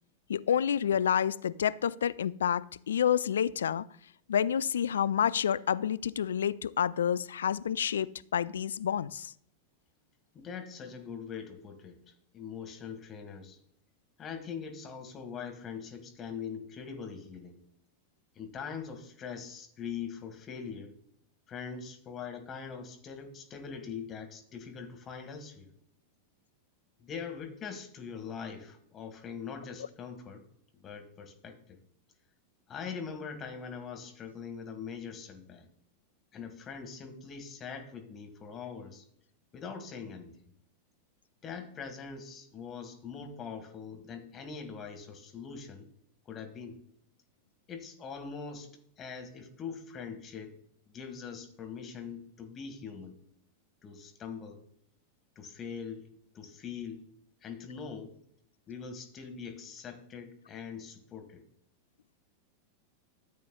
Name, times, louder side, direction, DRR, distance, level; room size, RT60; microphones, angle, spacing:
voice 1, 0.3-3.9 4.3-9.3, left 8 dB, 65° left, 0.3 m, -29 dB
voice 2, 10.3-13.6 14.2-17.6 18.4-21.0 21.5-25.7 27.0-30.4 30.7-31.8 32.7-35.7 36.3-39.0 39.5-40.4 41.4-45.9 46.3-46.8 47.7-48.7 49.0-50.6 50.9-53.2 53.8-54.6 55.4-56.1 56.3-57.0 57.4-58.1 58.7-61.4, left 6 dB, 25° left, 1.9 m, -42 dB
13.5 x 8.3 x 2.3 m
figure-of-eight pair, 90°, 0 cm